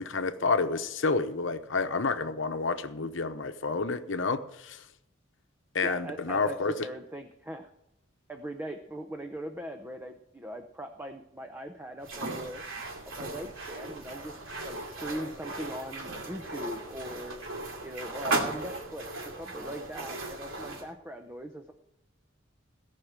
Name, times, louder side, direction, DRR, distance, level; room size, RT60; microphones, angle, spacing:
voice 1, 0.0-4.8 5.7-6.7, left 4 dB, 70° left, 9 dB, 0.9 m, -29 dB
voice 2, 5.8-7.7 8.3-12.6 13.1-17.4 17.8-21.7, equal, 10° right, 6 dB, 0.7 m, -40 dB
sound 1, 12.0-20.9, right 2 dB, 90° right, 2.7 m, -36 dB
17.5 x 5.9 x 8.1 m, 0.84 s
head